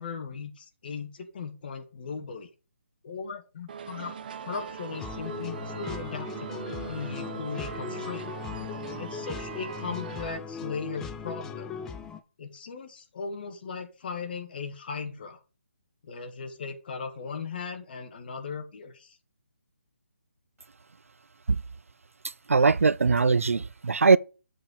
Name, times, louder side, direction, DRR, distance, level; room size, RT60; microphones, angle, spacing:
voice 1, 0.0-2.5 3.0-4.2 4.4-8.3 9.0-11.7 12.4-15.4 16.0-19.2, left 5 dB, 45° left, 1.6 m, -38 dB
sound 1, 3.7-10.4, right 6 dB, 40° right, 1.0 m, -40 dB
sound 2, 4.9-12.2, left 6 dB, 5° left, 0.3 m, -39 dB
voice 2, 22.5-24.2, right 4 dB, 85° right, 0.4 m, -21 dB
7.6 x 4.4 x 5.0 m
figure-of-eight pair, 155°, 7 cm